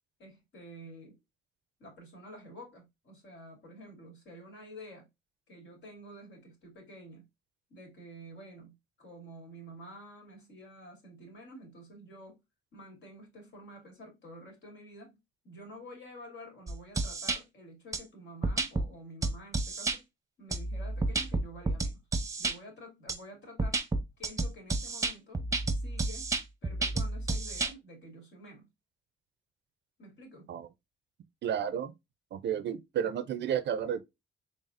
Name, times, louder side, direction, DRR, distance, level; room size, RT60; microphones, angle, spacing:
voice 1, 0.2-1.2 1.8-5.1 5.5-7.3 7.7-12.4 12.7-15.2 15.4-20.0 20.4-22.0 22.4-23.8 24.2-25.4 25.7-26.3 26.6-28.7 30.0-30.5, equal, 65° left, 2.6 m, -49 dB
sound 1, 16.7-17.4 17.9-18.0 18.4-18.9 19.2-20.0 20.5-22.5 23.1-23.2 23.6-27.7, right 3 dB, 15° right, 0.8 m, -30 dB
voice 2, 31.4-31.9 32.3-34.0, right 9 dB, 60° right, 0.5 m, -32 dB
4.1 x 3.5 x 2.5 m
cardioid pair, 90°, 20 cm